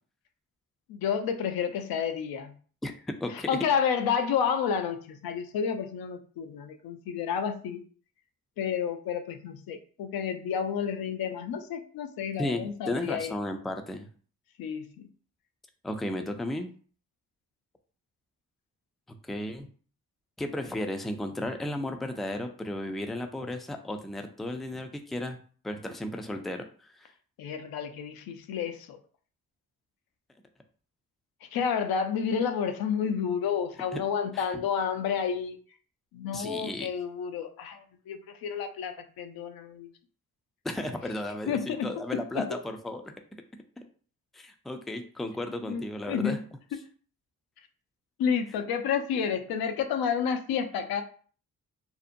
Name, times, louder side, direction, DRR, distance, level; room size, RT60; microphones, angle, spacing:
voice 1, 0.9-2.5 3.3-7.8 8.6-13.3 14.6-15.1 27.4-29.0 31.5-35.6 36.1-39.9 41.5-42.5 45.7-46.4 48.2-51.0, left 7 dB, 70° left, 8 dB, 0.5 m, -30 dB
voice 2, 12.4-14.1 15.8-16.7 19.3-19.7 20.4-25.4 25.6-27.1 33.9-34.0 34.3-34.6 36.3-36.9 40.6-43.1 44.3-46.4, left 1 dB, ahead, 5 dB, 0.4 m, -34 dB
2.6 x 2.1 x 2.5 m, 0.43 s
supercardioid pair, 45°, 37 cm